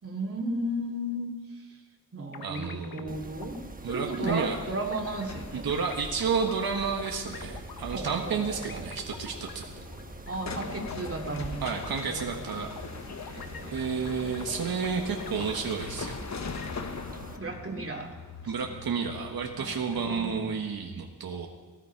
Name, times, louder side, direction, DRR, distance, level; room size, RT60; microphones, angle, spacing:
voice 1, 0.0-1.8 2.1-3.6 3.9-5.7 7.9-8.9 10.3-11.6 12.6-12.7 13.2-13.8 17.3-18.2 18.4-18.7 19.5-20.5, right 1 dB, 40° right, 0 dB, 2.8 m, -35 dB
sound 1, 2.3-3.1 3.4-3.6 4.1-5.4 5.7-11.5 11.8-16.0 16.3-17.0, left 7 dB, 80° left, 1.1 m, -45 dB
voice 2, 2.4-3.2 3.8-4.6 5.5-9.7 11.6-12.7 13.7-16.2 18.5-21.5, right 5 dB, 85° right, 2 dB, 1.5 m, -31 dB
Mechanisms, 3.1-17.4, right 2 dB, 25° right, 1.2 m, -45 dB
sound 2, 5.0-20.4, left 4 dB, 50° left, 1.1 m, -42 dB
17.5 x 16.5 x 4.6 m, 1.3 s
wide cardioid pair, 80°, 35 cm